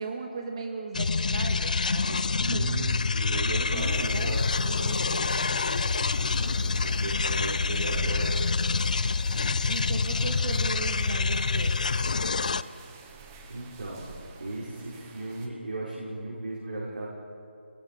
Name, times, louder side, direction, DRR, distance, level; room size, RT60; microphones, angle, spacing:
voice 1, 0.0-2.8 3.3-5.5 9.7-11.7, right 3 dB, 30° right, 3 dB, 2.5 m, -37 dB
sound 1, 0.9-12.6, left 4 dB, 40° left, 0.5 m, -27 dB
voice 2, 2.4-4.4 6.1-8.4 13.5-14.1 14.4-17.1, right 2 dB, 60° right, -7 dB, 6.2 m, -36 dB
sound 2, 3.7-15.5, right 3 dB, 10° right, 1.0 m, -46 dB
28.0 x 21.5 x 5.4 m, 2.6 s
figure-of-eight pair, 170°, 6 cm